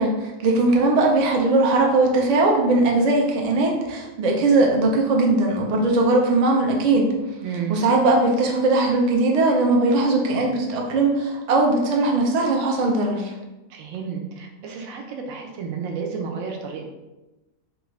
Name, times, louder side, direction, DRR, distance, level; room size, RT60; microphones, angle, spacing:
voice 1, 0.0-7.1 7.7-13.3, right 2 dB, 65° right, 0 dB, 0.4 m, -19 dB
voice 2, 7.4-7.8 13.7-16.8, right 6 dB, 85° right, 3 dB, 1.0 m, -31 dB
3.5 x 2.4 x 3.1 m, 1.1 s
omnidirectional pair, 1.4 m